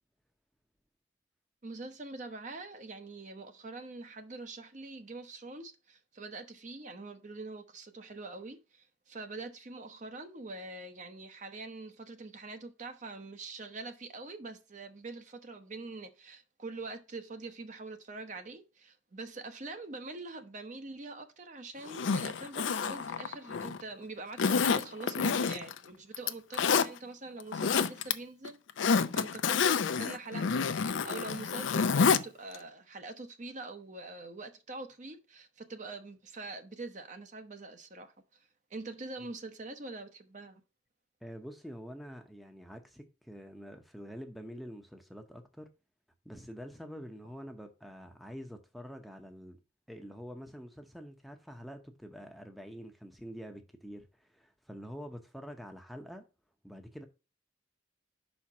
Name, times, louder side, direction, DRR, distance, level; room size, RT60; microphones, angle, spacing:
voice 1, 1.6-28.6 29.1-38.1 38.7-40.6, right 3 dB, 40° right, 0.8 m, -44 dB
Zipper (clothing), 21.9-23.8 24.4-25.8 26.1-26.9 27.4-28.1 28.4-32.2 32.5-32.6, left 5 dB, 90° left, 0.5 m, -28 dB
voice 2, 41.2-45.7 46.2-49.6 49.9-56.2 56.6-57.0, equal, ahead, 0.7 m, -46 dB
5.7 x 4.3 x 5.8 m
head